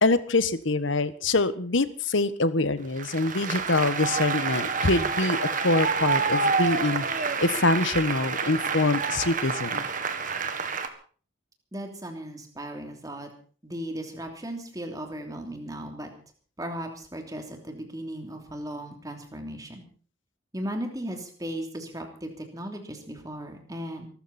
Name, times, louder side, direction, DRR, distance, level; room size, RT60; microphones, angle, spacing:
voice 1, 0.0-7.0 7.4-9.8, left 2 dB, 75° left, 14 dB, 1.3 m, -25 dB
Applause, 3.0-10.9, right 5 dB, 40° right, 1.8 m, -28 dB
voice 2, 11.7-13.3 13.6-16.1 16.6-19.8 20.5-24.1, right 1 dB, 20° right, 4 dB, 3.2 m, -36 dB
23.5 x 13.5 x 4.3 m, 0.42 s
head